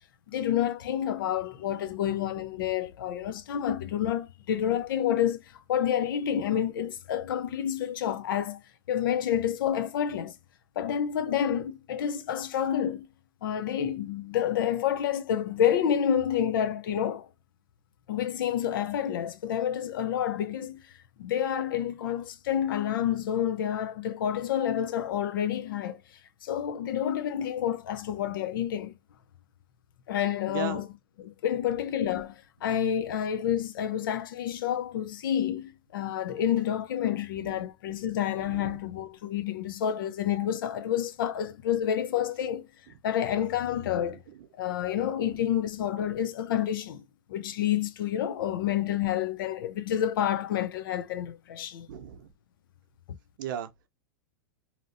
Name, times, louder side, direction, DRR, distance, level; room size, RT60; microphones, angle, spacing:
voice 1, 0.3-5.4 5.7-8.6 8.9-10.3 10.8-13.1 13.4-17.3 18.1-20.8 21.2-26.0 26.4-28.9 30.1-30.9 31.2-42.7 43.0-44.2 44.6-47.0 47.3-51.9, left 10 dB, 75° left, 0.6 m, -29 dB
voice 2, 30.5-30.8 38.4-38.8 43.9-44.1 51.9-52.3 53.4-53.7, right 8 dB, 65° right, 0.8 m, -36 dB
2.9 x 2.7 x 2.6 m
hypercardioid pair, 125°, 12 cm